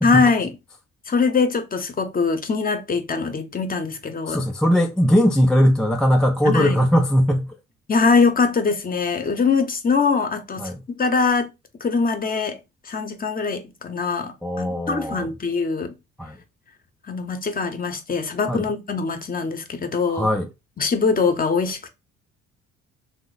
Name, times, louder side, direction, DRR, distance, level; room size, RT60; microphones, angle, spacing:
voice 1, 0.0-0.5 1.1-4.5 6.4-6.8 7.9-11.5 11.8-12.6 12.8-15.9 17.1-20.3 20.8-21.9, left 4 dB, 30° left, 0.7 m, -22 dB
voice 2, 4.3-7.5 10.6-10.8 14.4-15.3 16.2-16.4 18.5-18.7 20.1-20.5, equal, ahead, 0.3 m, -19 dB
3.1 x 2.0 x 3.9 m
cardioid pair, 85°, 30 cm